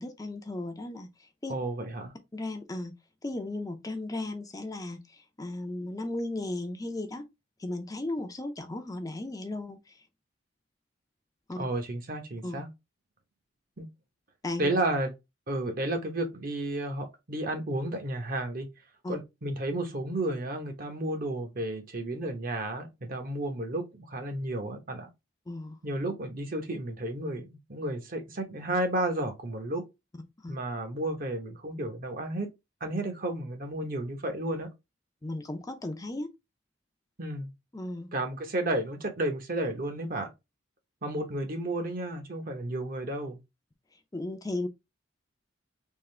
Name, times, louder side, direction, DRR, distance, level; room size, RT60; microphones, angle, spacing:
voice 1, 0.0-1.5 2.3-2.9 3.2-7.2 7.6-10.0 11.5-11.6 12.4-12.6 14.4-14.7 19.0-19.2 25.5-25.8 30.4-30.6 35.2-36.3 37.7-38.1 43.9-44.7, left 2 dB, 20° left, 0.5 m, -36 dB
voice 2, 1.5-2.1 11.6-12.7 13.8-13.9 14.6-15.1 15.5-18.7 19.1-25.1 25.8-29.8 30.5-32.5 32.8-34.7 37.2-37.5 38.1-40.3 41.0-43.4, right 1 dB, 45° right, 0.9 m, -32 dB
3.6 x 2.6 x 3.2 m
head